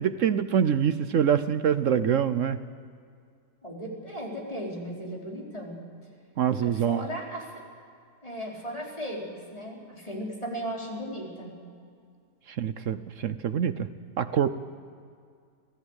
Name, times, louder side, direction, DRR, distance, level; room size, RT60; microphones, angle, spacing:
voice 1, 0.0-2.6 6.4-7.0 12.5-13.9 14.2-14.5, right 8 dB, 60° right, 13 dB, 0.9 m, -25 dB
voice 2, 3.6-5.8 6.6-7.5 8.2-11.5, equal, 20° left, -2 dB, 4.2 m, -36 dB
26.0 x 17.0 x 8.1 m, 2.3 s
omnidirectional pair, 1.8 m